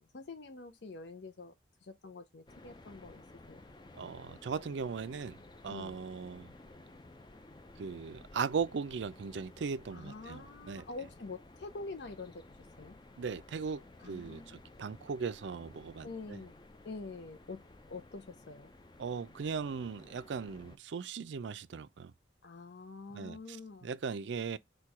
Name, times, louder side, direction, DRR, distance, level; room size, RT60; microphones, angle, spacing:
voice 1, 0.0-1.5 1.8-3.6 5.7-6.0 9.9-12.4 12.8-13.0 14.0-14.6 16.0-16.5 16.8-17.6 17.9-18.7 22.4-23.9, left 3 dB, 70° left, 0.6 m, -46 dB
sound 1, 2.5-20.8, left 2 dB, 25° left, 0.4 m, -55 dB
voice 2, 4.0-5.4 5.6-6.5 7.8-10.8 13.2-16.4 19.0-22.1 23.1-24.6, right 5 dB, 80° right, 0.4 m, -38 dB
4.4 x 2.3 x 4.7 m
head